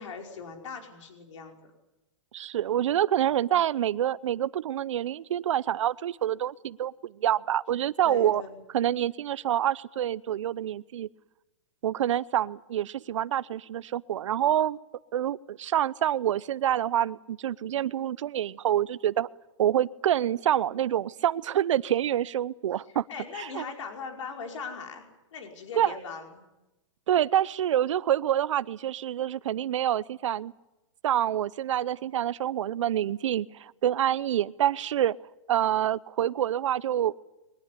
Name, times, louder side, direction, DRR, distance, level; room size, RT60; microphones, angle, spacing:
voice 1, 0.0-1.7 8.0-8.6 23.1-25.0 25.3-26.4, left 5 dB, 70° left, 3 dB, 5.0 m, -39 dB
voice 2, 2.3-8.4 8.7-11.1 11.8-14.8 15.1-19.3 19.6-23.1 23.3-23.6 25.8-25.9 27.1-30.5 31.0-35.2 35.5-37.1, right 11 dB, 70° right, 20 dB, 0.8 m, -27 dB
22.0 x 19.5 x 9.9 m, 0.98 s
hypercardioid pair, 140°, 16 cm